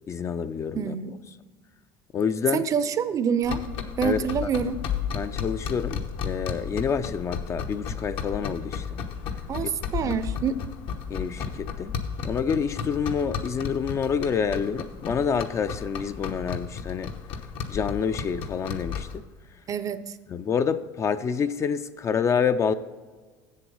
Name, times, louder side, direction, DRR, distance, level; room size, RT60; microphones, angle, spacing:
voice 1, 0.1-0.9 2.1-2.7 4.0-4.5 5.1-9.0 9.6-9.7 10.0-10.1 11.1-12.0 12.2-17.1 17.7-19.2 20.3-22.7, left 6 dB, 30° left, 0.4 m, -28 dB
voice 2, 0.8-1.2 2.5-3.6 4.0-4.8 9.5-10.6 19.7-20.0, right 7 dB, 35° right, 0.5 m, -26 dB
sound 1, 3.4-19.2, left 6 dB, 65° left, 1.0 m, -33 dB
7.7 x 7.3 x 5.4 m
supercardioid pair, 120°, 10 cm